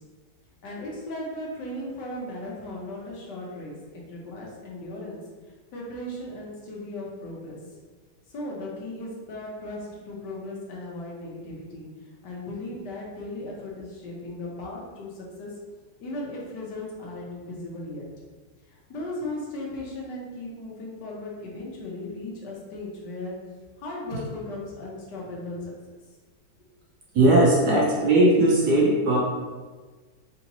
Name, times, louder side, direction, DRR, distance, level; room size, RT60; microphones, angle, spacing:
voice 1, 0.6-5.2 5.7-7.6 8.3-15.6 16.0-18.0 18.7-23.4 23.8-25.6, left 1 dB, 60° left, -3 dB, 1.4 m, -37 dB
voice 2, 27.1-29.2, right 1 dB, 65° right, -3 dB, 1.1 m, -18 dB
4.0 x 3.9 x 2.9 m, 1.4 s
omnidirectional pair, 2.3 m